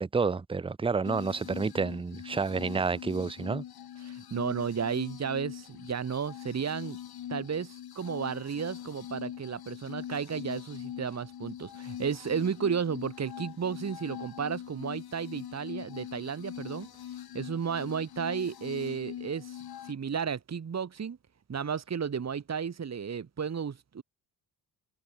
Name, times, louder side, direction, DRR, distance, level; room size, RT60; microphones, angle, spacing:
voice 1, 0.0-3.6, right 4 dB, 15° right, 0.6 m, -29 dB
sound 1, 1.0-19.9, left 10 dB, 65° left, 2.1 m, -42 dB
voice 2, 4.0-7.0 7.3-16.9 17.3-19.6 19.8-21.2 21.5-24.0, right 6 dB, 40° right, 2.6 m, -33 dB
cardioid pair, 115°, 41 cm